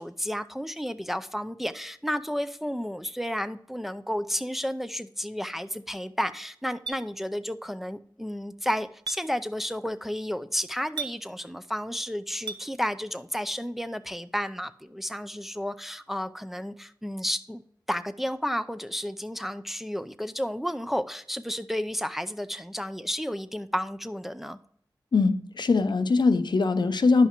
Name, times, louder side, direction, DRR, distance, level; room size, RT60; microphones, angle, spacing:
voice 1, 0.0-17.6 17.9-24.6, equal, 5° right, 10 dB, 0.5 m, -32 dB
Chink clink, 6.9-7.0 9.1-9.2 11.0-11.2 12.5-12.6, right 4 dB, 75° right, 0.6 m, -33 dB
voice 2, 25.1-27.3, left 4 dB, 70° left, 9 dB, 0.6 m, -22 dB
10.5 x 5.6 x 2.9 m, 0.62 s
cardioid pair, 50°, 8 cm